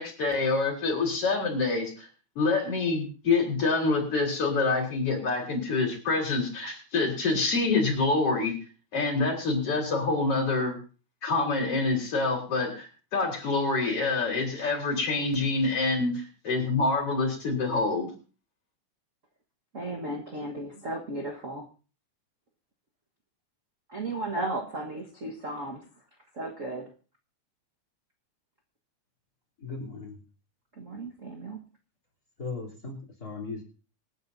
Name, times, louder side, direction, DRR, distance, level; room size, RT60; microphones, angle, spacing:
voice 1, 0.0-2.1 2.4-8.5 8.9-10.8 11.2-18.1, left 3 dB, 50° left, 1 dB, 4.9 m, -26 dB
voice 2, 19.7-21.7 23.9-25.9 26.3-26.9 30.8-31.6, right 2 dB, 35° right, 0 dB, 1.3 m, -35 dB
voice 3, 29.6-30.2 32.4-33.6, left 4 dB, 30° left, -2 dB, 3.8 m, -37 dB
26.5 x 9.8 x 2.7 m, 0.35 s
omnidirectional pair, 3.3 m